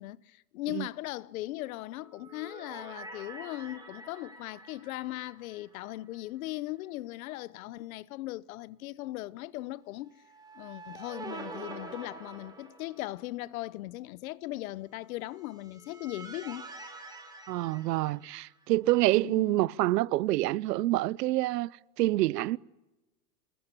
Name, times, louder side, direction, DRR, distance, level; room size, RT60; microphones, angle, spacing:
voice 1, 0.0-10.1 10.5-16.7 19.1-19.7, left 17 dB, 60° left, 0.9 m, -39 dB
sound 1, 2.0-6.3 6.5-6.6 10.2-13.3 15.3-18.7, right 3 dB, 10° right, 3.9 m, -46 dB
voice 2, 17.5-21.7 22.0-22.6, right 17 dB, 80° right, 0.8 m, -27 dB
26.0 x 20.5 x 10.0 m
supercardioid pair, 170°, 48 cm